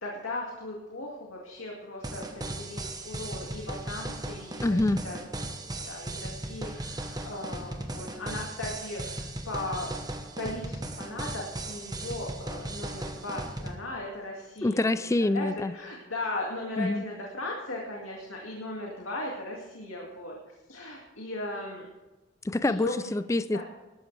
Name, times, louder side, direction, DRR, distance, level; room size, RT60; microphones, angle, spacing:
voice 1, 0.0-4.7 5.0-5.2 5.9-9.9 10.4-14.9 15.2-20.3 20.7-21.9 22.6-22.9 23.5-23.6, left 2 dB, 90° left, -2 dB, 2.3 m, -37 dB
sound 1, 2.0-13.8, right 1 dB, 20° right, 1.1 m, -37 dB
voice 2, 4.6-5.0 14.6-15.7 16.8-17.0 22.4-23.6, left 2 dB, 15° left, 14 dB, 0.3 m, -26 dB
20.5 x 12.5 x 3.4 m, 1.1 s
head